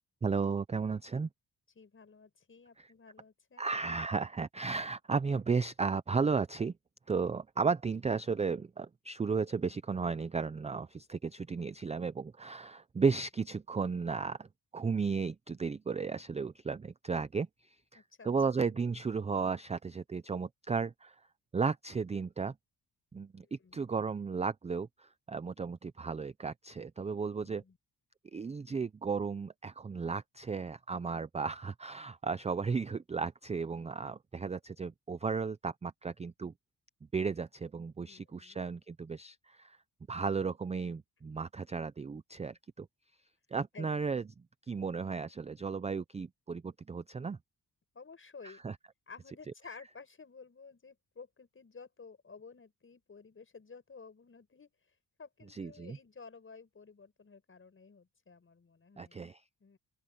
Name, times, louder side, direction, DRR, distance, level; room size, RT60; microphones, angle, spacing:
voice 1, 0.2-1.3 2.8-2.9 3.6-6.7 7.1-14.5 14.7-17.5 17.9-21.1 21.5-22.5 23.1-27.6 28.3-36.5 37.1-39.8 40.1-42.9 43.5-44.2 44.7-47.4 48.4-48.7 55.5-56.0 59.0-59.4, right 5 dB, 20° right, 0.3 m, -34 dB
voice 2, 1.8-3.7 17.9-18.3 18.5-18.9 23.4-24.0 27.1-27.8 38.1-38.6 43.7-44.0 47.9-48.6 49.1-54.7 55.2-59.3 59.6-59.8, left 5 dB, 35° left, 7.0 m, -53 dB
open air
wide cardioid pair, 170°, 38 cm